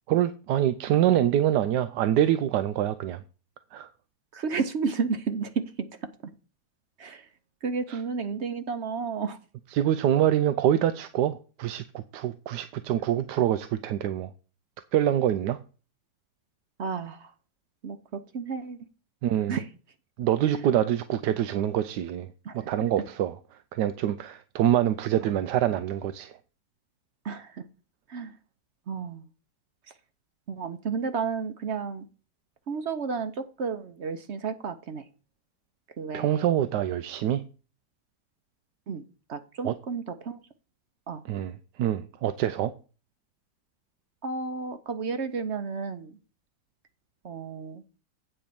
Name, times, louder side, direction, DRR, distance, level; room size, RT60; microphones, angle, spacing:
voice 1, 0.1-3.2 3.7-3.9 9.7-14.3 14.9-15.6 19.2-19.6 20.2-22.3 22.5-23.3 23.7-26.3 36.1-37.4 39.6-39.7 41.3-41.5 41.8-42.7, right 11 dB, 90° right, 1.2 m, -25 dB
voice 2, 4.3-6.1 7.0-7.3 7.6-9.4 16.8-17.3 17.8-18.8 19.5-19.7 20.4-20.7 22.4-22.7 25.2-25.4 27.2-27.6 28.1-28.4 28.9-29.3 30.5-32.1 32.7-35.1 36.0-36.5 38.9-39.0 39.3-40.4 41.1-41.2 44.2-46.2 47.2-47.8, right 5 dB, 55° right, 0.8 m, -32 dB
8.8 x 4.5 x 6.9 m
omnidirectional pair, 1.7 m